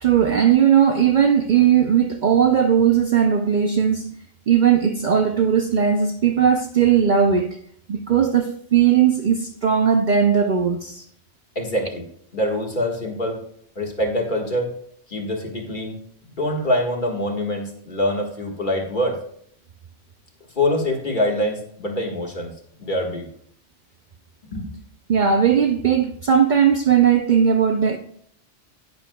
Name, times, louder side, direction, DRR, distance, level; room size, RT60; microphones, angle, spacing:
voice 1, 0.0-4.2 4.5-7.6 7.9-11.0 25.1-28.0, right 8 dB, 55° right, 0.6 m, -18 dB
voice 2, 11.6-12.0 12.3-13.4 13.8-14.8 15.1-16.0 16.3-19.2 20.6-22.5 22.8-23.3 24.5-24.7, left 1 dB, 45° left, 1.7 m, -24 dB
10.0 x 9.5 x 2.2 m
omnidirectional pair, 1.2 m